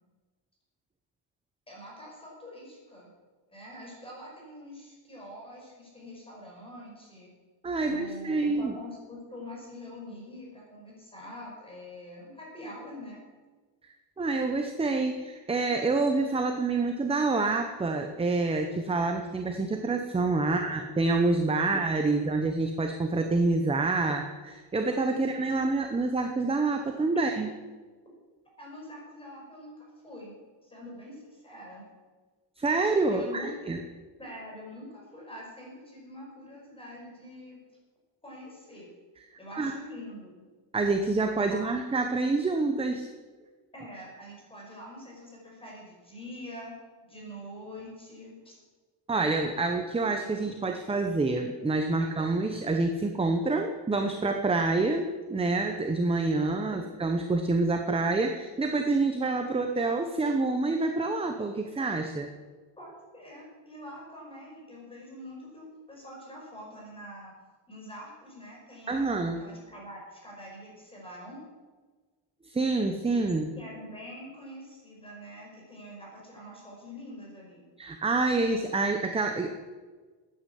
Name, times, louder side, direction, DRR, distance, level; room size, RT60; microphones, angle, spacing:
voice 1, 1.7-3.1 3.5-7.3 7.8-13.2 20.4-20.8 21.6-21.7 28.6-30.4 30.6-31.9 33.1-33.5 34.2-37.6 38.2-38.9 39.4-40.4 41.5-41.7 43.7-46.7 47.0-48.6 56.8-56.9 62.8-67.3 67.7-71.4 73.6-77.6, equal, 10° left, -3 dB, 5.7 m, -45 dB
voice 2, 7.6-8.7 14.2-27.5 32.6-33.8 39.6-39.7 40.7-43.1 49.1-62.3 68.9-69.4 72.4-73.5 77.8-79.6, right 3 dB, 10° right, 5 dB, 0.8 m, -27 dB
13.5 x 9.8 x 8.3 m, 1.4 s
cardioid pair, 160°, 46 cm